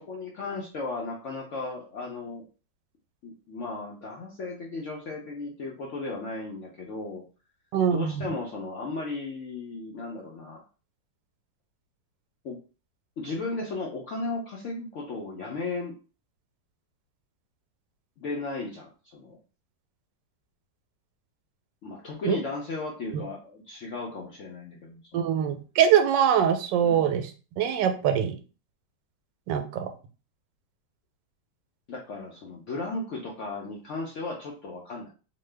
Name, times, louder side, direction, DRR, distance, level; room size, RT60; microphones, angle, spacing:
voice 1, 0.0-2.4 3.2-7.2 7.9-10.6 12.4-12.6 13.2-16.0 18.2-19.4 21.8-25.2 26.8-27.1 31.9-35.1, left 3 dB, 75° left, -2 dB, 0.6 m, -35 dB
voice 2, 7.7-8.3 22.2-22.4 25.1-27.3 27.6-28.3 29.5-29.9, right 8 dB, 85° right, 7 dB, 1.2 m, -23 dB
3.0 x 2.2 x 3.2 m, 0.35 s
omnidirectional pair, 1.9 m